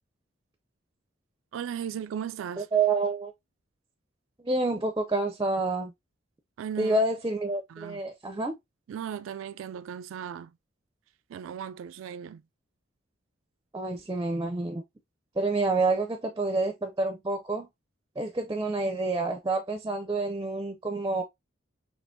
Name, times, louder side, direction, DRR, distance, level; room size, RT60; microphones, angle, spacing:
voice 1, 1.5-2.7 6.6-7.0 7.7-8.0 8.9-10.5 11.3-12.4, right 8 dB, 85° right, 0.3 m, -36 dB
voice 2, 2.6-3.3 4.4-5.9 6.8-8.5 13.7-14.8 15.4-17.7 18.2-21.2, right 3 dB, 20° right, 0.4 m, -28 dB
6.2 x 2.9 x 2.6 m
head